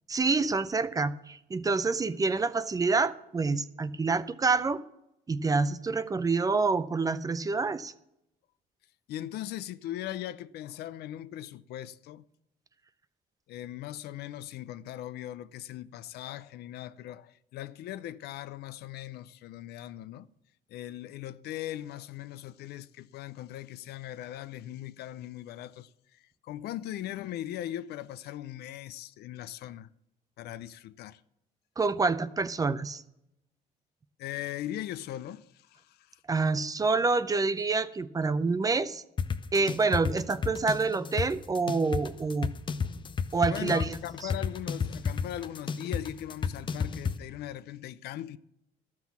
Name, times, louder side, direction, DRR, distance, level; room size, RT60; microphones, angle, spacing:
voice 1, 0.1-4.8 5.3-7.9 31.8-33.0 36.3-39.0 39.5-42.5 43.3-44.0, right 4 dB, 20° right, 0.5 m, -27 dB
voice 2, 9.1-12.2 13.5-20.3 20.7-29.9 30.4-31.2 34.2-36.2 43.5-48.4, left 13 dB, 70° left, 0.5 m, -39 dB
sound 1, 39.2-47.2, left 6 dB, 30° left, 0.6 m, -32 dB
12.5 x 6.0 x 7.2 m
cardioid pair, 110°, 17 cm